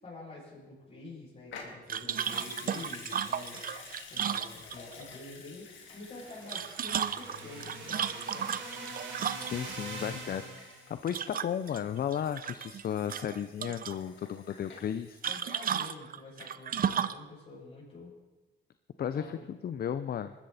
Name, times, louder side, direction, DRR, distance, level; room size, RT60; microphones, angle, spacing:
voice 1, 0.0-8.5 15.3-18.2 19.1-19.5, left 2 dB, 35° left, -9 dB, 6.9 m, -48 dB
Water tap faucet / Sink (filling or washing) / Liquid, 1.5-16.1 16.4-16.5, left 5 dB, 75° left, 3.2 m, -51 dB
sound 1, 1.9-5.0 6.3-9.7 11.1-11.8 12.1-12.8 13.1-14.0 15.2-17.2, right 8 dB, 45° right, 0.7 m, -34 dB
sound 2, 6.0-10.9, right 2 dB, 75° right, 5.0 m, -43 dB
voice 2, 9.5-10.4 10.9-15.2 19.0-20.3, left 9 dB, 50° left, 11 dB, 0.7 m, -34 dB
20.5 x 13.5 x 4.2 m, 1.1 s
cardioid pair, 90°, 20 cm